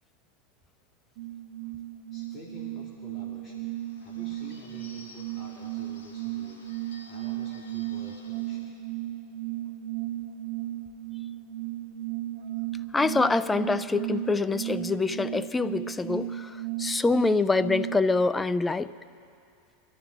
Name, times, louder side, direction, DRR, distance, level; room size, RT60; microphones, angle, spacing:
sound 1, 1.2-18.0, right 14 dB, 60° right, 0.7 m, -35 dB
voice 1, 2.1-8.8, left 2 dB, 40° left, -3 dB, 2.2 m, -50 dB
Bird / Bell, 3.7-8.7, left 3 dB, 80° left, 2.1 m, -53 dB
voice 2, 12.9-18.9, left 3 dB, 15° left, 15 dB, 0.4 m, -25 dB
23.5 x 12.0 x 3.8 m, 2.4 s
hypercardioid pair, 100°, 0 cm